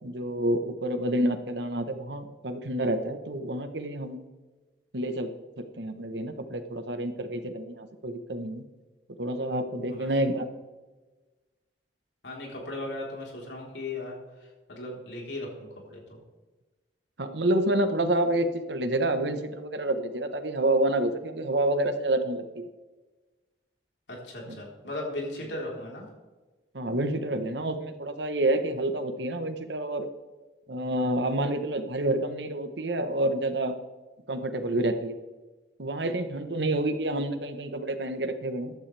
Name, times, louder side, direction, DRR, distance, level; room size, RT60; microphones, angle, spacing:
voice 1, 0.0-4.2 4.9-8.6 9.2-10.5 17.2-22.7 24.5-24.6 26.7-30.1 30.7-33.8 34.3-35.1 35.8-38.7, right 1 dB, 80° right, 8 dB, 1.2 m, -28 dB
voice 2, 12.2-14.2 14.7-16.2 24.1-26.0, left 2 dB, 90° left, -2 dB, 4.1 m, -37 dB
15.0 x 12.0 x 3.5 m, 1.2 s
head